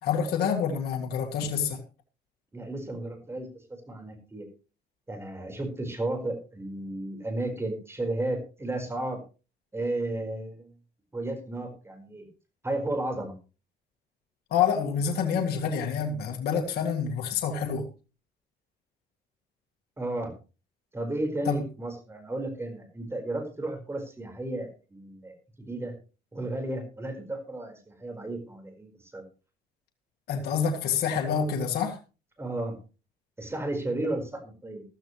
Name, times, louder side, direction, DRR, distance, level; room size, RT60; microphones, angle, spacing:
voice 1, 0.0-1.8 14.5-17.9 21.5-21.7 30.3-32.0, left 6 dB, 70° left, 2.0 m, -27 dB
voice 2, 2.5-3.5 3.9-4.5 5.1-9.2 9.7-10.7 11.1-12.3 12.6-13.3 20.0-20.3 20.9-25.9 26.3-29.2 32.4-32.8 33.4-34.8, right 2 dB, 15° right, 4.7 m, -33 dB
14.0 x 13.5 x 3.2 m
cardioid pair, 110°, 17 cm